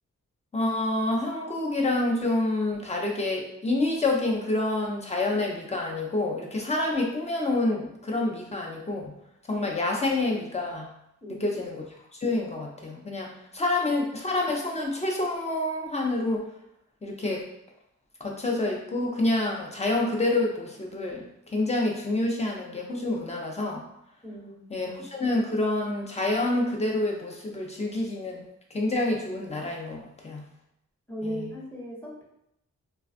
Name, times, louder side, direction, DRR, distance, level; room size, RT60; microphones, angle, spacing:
voice 1, 0.5-9.1 9.5-10.9 11.3-11.8 12.1-16.5 17.0-17.5 18.2-23.8 24.7-28.4 28.7-30.4 31.2-31.5, left 2 dB, 20° left, 0 dB, 0.6 m, -28 dB
voice 2, 24.2-24.7 31.1-32.2, equal, 5° left, -4 dB, 1.0 m, -37 dB
3.2 x 2.3 x 2.5 m, 0.78 s
wide cardioid pair, 95°, 30 cm